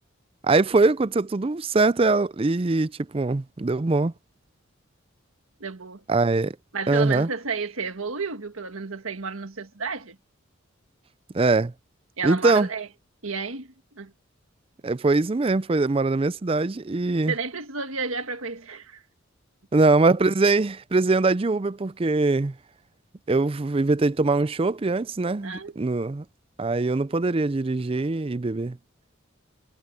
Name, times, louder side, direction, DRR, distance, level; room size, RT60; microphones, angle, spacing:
voice 1, 0.4-4.1 6.1-6.6 6.9-7.3 11.3-11.7 12.2-12.7 14.8-17.3 19.7-22.5 23.3-26.2 26.6-28.8, right 3 dB, 25° right, 0.4 m, -22 dB
voice 2, 5.6-6.0 6.7-10.1 12.2-12.9 13.2-13.7 13.9-14.1 17.3-19.0 25.4-25.8, right 4 dB, 85° right, 1.7 m, -31 dB
head